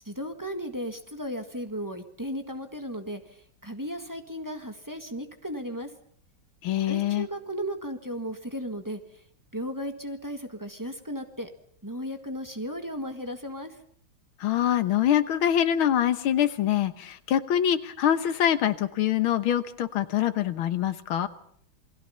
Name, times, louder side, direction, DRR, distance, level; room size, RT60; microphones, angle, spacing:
voice 1, 0.0-5.9 6.9-9.2 9.5-11.5 11.8-13.8, equal, 10° right, 5 dB, 1.5 m, -35 dB
voice 2, 6.6-7.3 14.4-21.3, left 10 dB, 80° left, 11 dB, 1.9 m, -24 dB
28.5 x 20.0 x 5.7 m, 0.65 s
omnidirectional pair, 2.3 m